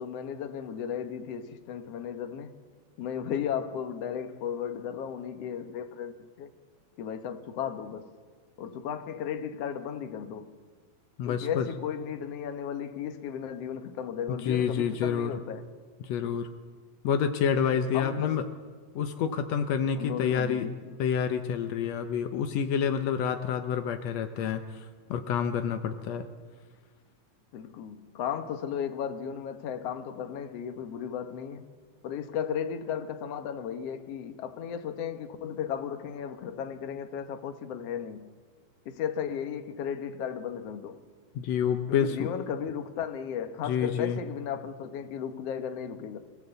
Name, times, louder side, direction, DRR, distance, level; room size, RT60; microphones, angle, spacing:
voice 1, 0.0-2.6 3.0-6.5 7.0-8.1 8.6-10.5 11.2-15.6 17.9-18.4 19.9-21.0 27.5-31.6 32.0-38.3 38.8-41.0 41.9-46.2, left 8 dB, 70° left, 1.5 m, -35 dB
voice 2, 11.2-11.7 14.3-15.4 16.0-16.5 17.0-18.4 18.9-20.7 21.0-26.3 41.3-42.3 43.6-44.2, left 7 dB, 90° left, 1.4 m, -28 dB
24.5 x 17.0 x 8.1 m
omnidirectional pair, 4.5 m